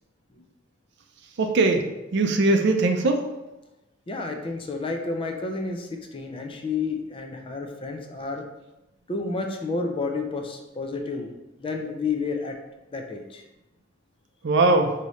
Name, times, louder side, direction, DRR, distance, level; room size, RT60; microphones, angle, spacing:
voice 1, 1.4-3.3 14.4-14.9, right 2 dB, 60° right, 5 dB, 0.5 m, -20 dB
voice 2, 4.1-8.5 9.1-11.3 11.6-12.6 12.9-13.4, left 4 dB, 25° left, 3 dB, 0.5 m, -30 dB
4.9 x 2.8 x 3.1 m, 0.97 s
head